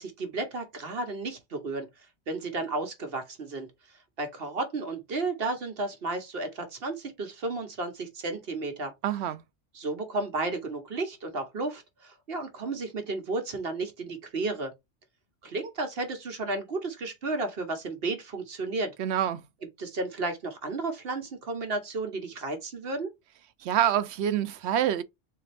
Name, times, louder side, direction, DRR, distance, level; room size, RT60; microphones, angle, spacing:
voice 1, 0.0-1.9 2.3-8.9 9.7-14.7 15.4-18.9 19.8-23.1, right 3 dB, 60° right, 1.1 m, -33 dB
voice 2, 9.0-9.4 19.0-19.4 23.6-25.0, right 10 dB, 80° right, 0.8 m, -26 dB
4.0 x 3.4 x 3.3 m
omnidirectional pair, 1.1 m